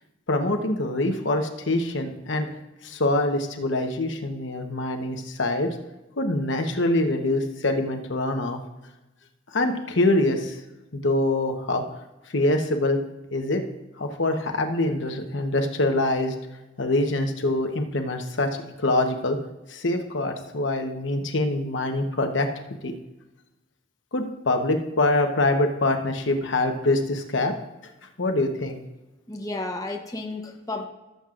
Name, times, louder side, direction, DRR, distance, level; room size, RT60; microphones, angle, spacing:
voice 1, 0.3-2.5 2.8-5.7 6.2-8.6 9.5-10.5 10.9-11.8 12.3-13.0 13.3-13.6 14.0-16.3 16.8-18.5 18.8-19.4 19.7-22.5 22.8-22.9 24.1-27.5 28.2-28.8, left 2 dB, 65° left, 5 dB, 1.0 m, -24 dB
voice 2, 29.3-30.9, left 2 dB, 15° left, 1 dB, 0.9 m, -32 dB
17.5 x 7.6 x 2.5 m, 1.0 s
head